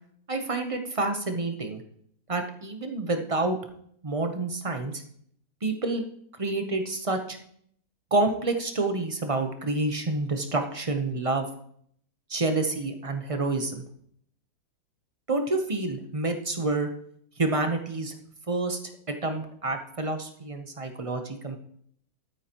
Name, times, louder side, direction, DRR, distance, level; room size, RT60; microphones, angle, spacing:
voice 1, 0.3-1.8 2.3-3.6 4.0-5.0 5.6-6.0 6.4-7.4 8.1-11.5 12.3-13.8 15.3-16.9 17.4-18.1 18.5-18.8 19.1-21.6, right 2 dB, 30° right, 5 dB, 0.6 m, -28 dB
12.0 x 9.4 x 2.9 m, 0.66 s
omnidirectional pair, 1.8 m